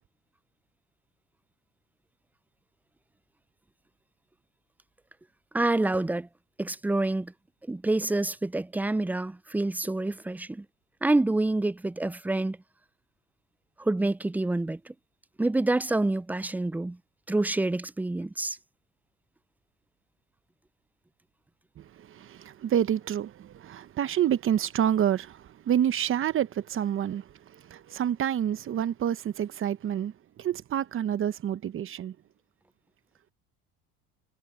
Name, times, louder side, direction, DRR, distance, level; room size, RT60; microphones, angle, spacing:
voice 1, 5.5-6.3 6.6-7.3 7.7-10.7 11.0-12.6 13.8-14.9 15.4-17.0 17.3-18.6, right 2 dB, 5° right, 0.4 m, -27 dB
voice 2, 21.8-32.1, right 10 dB, 40° right, 0.9 m, -28 dB
supercardioid pair, 105°, 31 cm